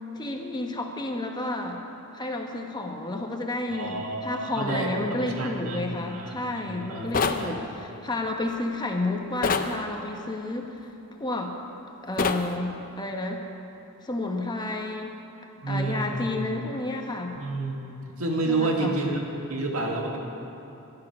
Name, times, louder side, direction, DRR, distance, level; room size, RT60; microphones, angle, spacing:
voice 1, 0.1-1.8 2.1-10.9 11.2-11.5 12.0-13.5 14.0-15.2 15.7-17.4 18.5-18.9, left 2 dB, 20° left, 2 dB, 1.1 m, -31 dB
voice 2, 3.7-5.8 6.1-7.9 15.6-16.4 17.4-20.2, right 2 dB, 70° right, 0 dB, 2.0 m, -30 dB
sound 1, 7.1-7.5 9.4-9.7 12.2-12.5, left 4 dB, 40° left, 0.6 m, -24 dB
15.0 x 12.0 x 6.0 m, 2.9 s
head